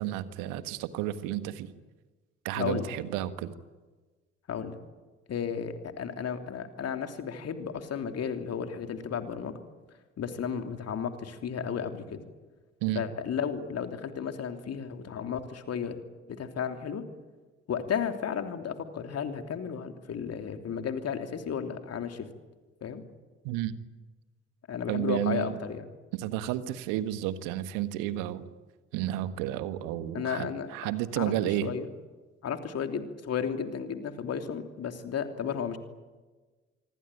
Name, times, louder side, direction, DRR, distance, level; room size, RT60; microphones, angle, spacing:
voice 1, 0.0-1.7 2.4-3.5 12.8-13.0 23.4-23.7 24.9-25.5 26.1-28.5 28.9-31.7, right 13 dB, 65° right, 13 dB, 1.6 m, -31 dB
voice 2, 2.5-2.9 4.5-4.8 5.3-9.6 10.2-12.2 12.9-15.9 16.4-17.0 17.7-22.3 22.8-23.0 24.7-25.9 30.1-30.7 31.2-31.9 32.4-35.8, left 7 dB, 45° left, 7 dB, 3.1 m, -33 dB
26.0 x 24.5 x 9.2 m, 1.3 s
figure-of-eight pair, 50°, 35 cm